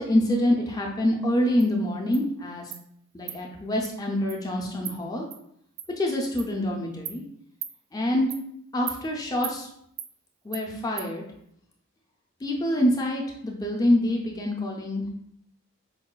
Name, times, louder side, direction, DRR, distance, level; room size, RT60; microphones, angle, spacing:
voice 1, 0.0-2.7 3.1-5.3 6.0-7.2 7.9-8.3 8.7-9.7 10.4-11.2 12.4-15.1, left 1 dB, 15° left, 0 dB, 0.4 m, -26 dB
Insect, 1.6-1.7 2.1-2.2 2.7-2.8 3.3-3.4 3.8-3.9 4.3-4.4 4.8-5.0 5.3-5.4 5.8-5.9 6.4-6.5 7.1-7.2 7.6-7.7 8.3-8.4 8.9-9.0 9.4-9.6 10.0-10.1 10.5-10.6 11.0-11.1, right 10 dB, 80° right, 0.3 m, -36 dB
4.6 x 2.2 x 2.2 m, 0.71 s
head